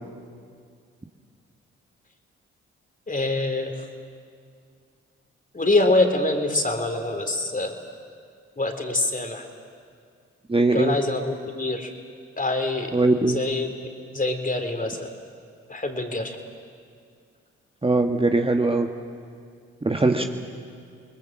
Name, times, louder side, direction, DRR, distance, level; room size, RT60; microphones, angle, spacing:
voice 1, 3.1-3.9 5.5-7.8 8.6-9.5 10.7-11.9 12.4-12.9 13.2-13.7 14.1-15.1 15.7-16.4 20.2-20.3, left 2 dB, 30° left, 5 dB, 3.5 m, -25 dB
voice 2, 10.5-11.0 12.9-13.4 17.8-18.9 19.8-20.3, right 2 dB, 20° right, 4 dB, 1.5 m, -21 dB
28.0 x 20.5 x 7.5 m, 2.2 s
hypercardioid pair, 45°, 29 cm